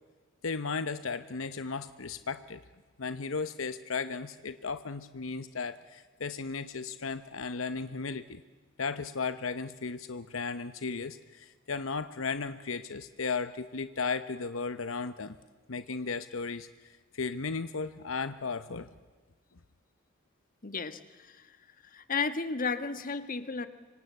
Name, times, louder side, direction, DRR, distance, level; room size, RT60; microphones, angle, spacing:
voice 1, 0.4-2.6 3.0-8.4 8.8-15.4 15.7-18.9, left 4 dB, 75° left, 12 dB, 0.9 m, -35 dB
voice 2, 20.6-21.6 21.8-23.7, left 4 dB, 45° left, 11 dB, 1.5 m, -34 dB
25.5 x 25.5 x 8.2 m, 1.4 s
head